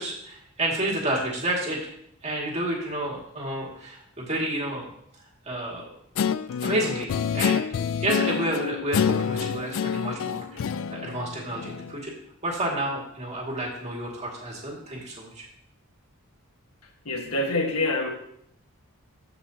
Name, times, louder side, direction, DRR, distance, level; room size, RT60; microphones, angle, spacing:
voice 1, 0.0-1.9 2.2-4.9 5.4-5.8 6.6-12.1 12.4-15.5, right 1 dB, 30° right, -2 dB, 2.2 m, -30 dB
Guitar, 6.1-12.0, left 7 dB, 65° left, 0.3 m, -27 dB
voice 2, 17.0-18.1, left 2 dB, 85° left, 2 dB, 1.5 m, -26 dB
15.0 x 5.5 x 2.9 m, 0.72 s
head